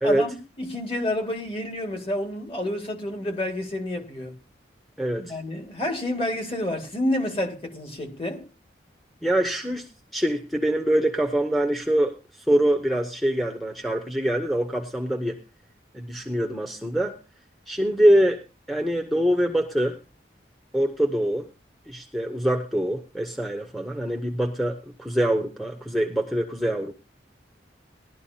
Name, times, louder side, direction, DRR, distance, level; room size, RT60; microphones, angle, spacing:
voice 1, 0.0-4.4 5.2-8.5, left 1 dB, 30° left, 2.1 m, -29 dB
voice 2, 5.0-5.4 9.2-15.4 15.9-17.2 17.7-18.4 18.7-20.0 20.7-21.5 21.9-26.9, right 1 dB, ahead, 0.8 m, -24 dB
19.0 x 12.0 x 2.8 m
head